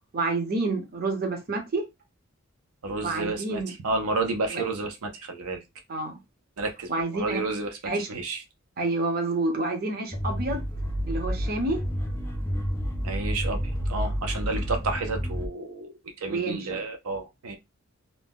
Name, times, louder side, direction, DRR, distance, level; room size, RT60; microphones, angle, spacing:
voice 1, 0.1-1.8 2.9-3.7 4.5-4.6 5.9-6.2 6.9-7.4 7.8-8.1 8.8-10.6 11.1-11.8 16.3-16.8, right 2 dB, 45° right, 0.6 m, -28 dB
voice 2, 2.8-5.6 6.6-7.8 8.1-8.4 13.0-17.6, right 3 dB, 85° right, 0.5 m, -31 dB
sound 1, 10.1-15.5, equal, 10° left, 0.5 m, -30 dB
2.6 x 2.1 x 3.4 m
head